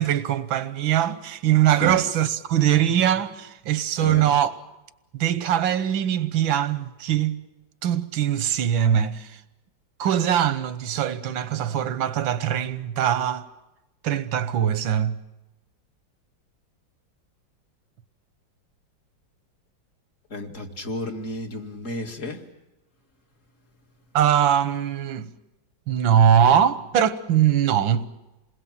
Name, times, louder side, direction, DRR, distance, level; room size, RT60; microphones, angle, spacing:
voice 1, 0.0-4.5 5.1-7.4 7.8-9.4 10.0-13.4 14.0-15.2 24.1-25.3 25.9-28.1, right 10 dB, 90° right, 1.8 m, -22 dB
voice 2, 4.0-4.3 20.3-22.4, left 1 dB, 40° left, 2.5 m, -32 dB
28.0 x 21.0 x 7.4 m
omnidirectional pair, 2.1 m